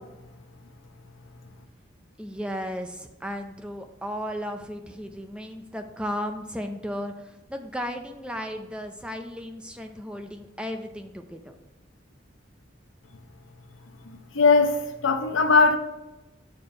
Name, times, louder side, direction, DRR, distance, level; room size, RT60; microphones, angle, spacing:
voice 1, 2.2-11.5, equal, 5° right, 5 dB, 0.4 m, -35 dB
voice 2, 14.0-15.8, left 4 dB, 85° left, 7 dB, 0.7 m, -20 dB
6.7 x 4.4 x 5.2 m, 1.0 s
head